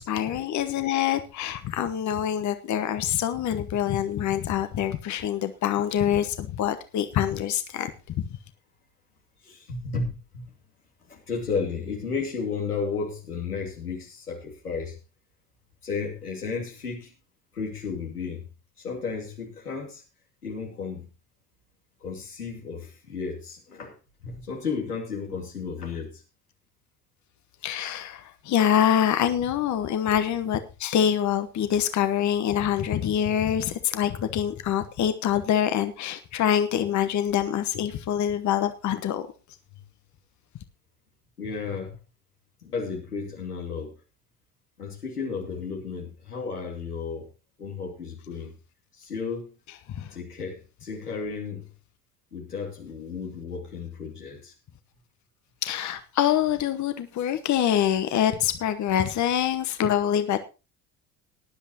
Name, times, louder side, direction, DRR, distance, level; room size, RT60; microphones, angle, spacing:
voice 1, 0.0-8.3 27.6-39.3 49.9-50.2 55.6-60.4, left 10 dB, 40° left, 10 dB, 1.1 m, -25 dB
voice 2, 9.4-10.5 11.1-15.0 15.8-17.1 17.5-18.4 18.8-20.0 20.4-21.1 22.0-23.9 24.2-26.2 41.4-42.0 42.6-43.9 44.8-47.3 47.6-48.5 49.0-49.5 50.1-51.7 52.3-54.5, left 5 dB, 90° left, -1 dB, 2.6 m, -33 dB
19.0 x 10.5 x 2.9 m, 0.30 s
figure-of-eight pair, 60°, 44 cm